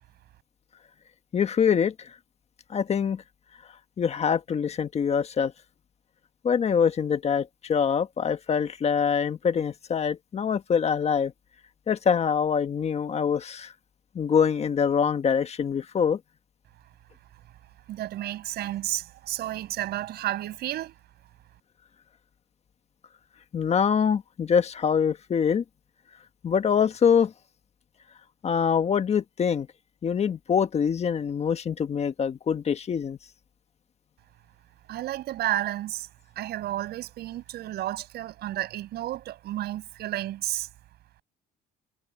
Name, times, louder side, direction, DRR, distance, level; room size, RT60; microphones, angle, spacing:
voice 1, 1.3-2.1 2.7-3.2 4.0-5.5 6.4-11.3 11.9-13.7 14.1-16.2 23.5-25.6 26.4-27.3 28.4-29.7 30.0-33.2, left 7 dB, 40° left, 1.5 m, -24 dB
voice 2, 17.9-20.9 34.9-36.1 36.4-40.7, right 14 dB, 70° right, 7.0 m, -31 dB
cardioid pair, 110°, 17 cm